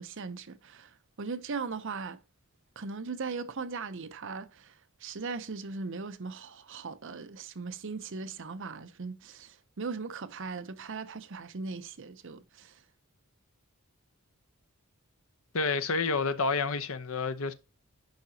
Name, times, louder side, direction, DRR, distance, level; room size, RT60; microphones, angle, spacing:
voice 1, 0.0-2.2 2.8-12.8, right 4 dB, 60° right, 0.7 m, -39 dB
voice 2, 15.5-17.5, left 4 dB, 65° left, 0.8 m, -29 dB
10.5 x 4.9 x 2.7 m
head